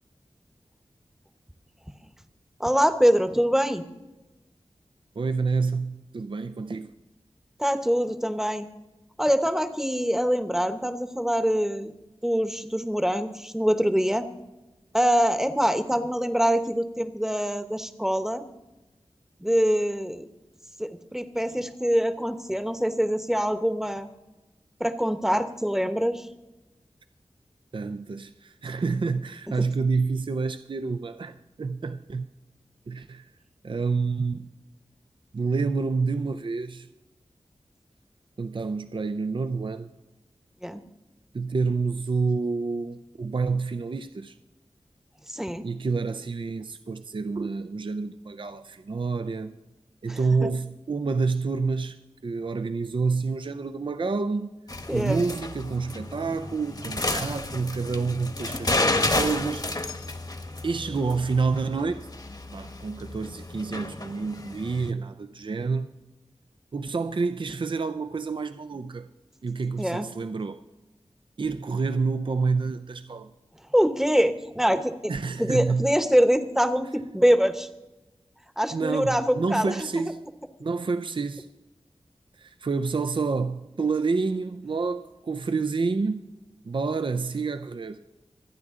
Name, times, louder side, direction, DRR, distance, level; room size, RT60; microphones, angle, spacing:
voice 1, 2.6-3.8 7.6-8.6 9.2-11.9 12.2-14.3 14.9-18.4 19.4-20.3 20.8-24.1 24.8-26.3 40.6-40.8 45.3-45.7 50.1-50.2 54.9-55.2 69.8-70.1 73.7-75.1 75.4-77.7 78.6-79.8, equal, 5° right, 0.9 m, -24 dB
voice 2, 5.2-6.9 27.7-32.3 32.9-33.3 33.6-34.5 35.3-36.9 38.4-39.9 41.3-44.4 45.6-49.5 50.0-54.6 54.9-59.7 60.6-62.1 62.5-65.9 66.7-69.1 69.4-70.6 71.4-73.3 75.1-76.0 78.7-80.2 80.6-81.5 82.3-86.3 86.6-88.0, right 4 dB, 50° right, 0.5 m, -28 dB
sound 1, 54.7-64.9, left 2 dB, 40° left, 1.1 m, -31 dB
25.5 x 9.3 x 3.7 m
wide cardioid pair, 70°, 11 cm